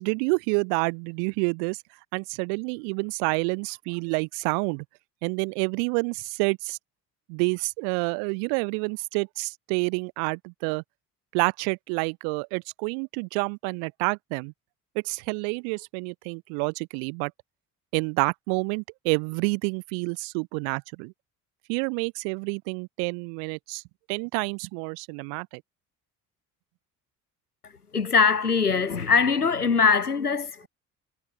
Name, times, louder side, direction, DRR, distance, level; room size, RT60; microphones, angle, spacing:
voice 1, 0.0-1.8 2.1-4.8 5.2-6.8 7.3-10.8 11.3-14.5 14.9-17.3 17.9-21.1 21.7-23.8 24.1-25.6, right 40 dB or more, 60° right, 2.9 m, -28 dB
voice 2, 27.6-30.7, left 5 dB, 85° left, 1.6 m, -22 dB
figure-of-eight pair, 55°, 44 cm